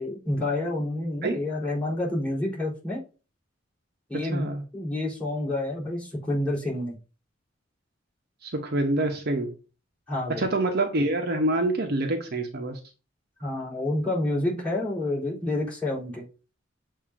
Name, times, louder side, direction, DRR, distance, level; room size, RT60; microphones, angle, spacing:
voice 1, 0.0-3.0 4.1-4.5 4.7-7.0 10.1-10.4 13.4-16.2, left 1 dB, 5° left, 3.9 m, -28 dB
voice 2, 4.1-4.6 8.4-9.5 10.4-12.8, right 2 dB, 55° right, 0.9 m, -26 dB
7.3 x 2.7 x 5.0 m
head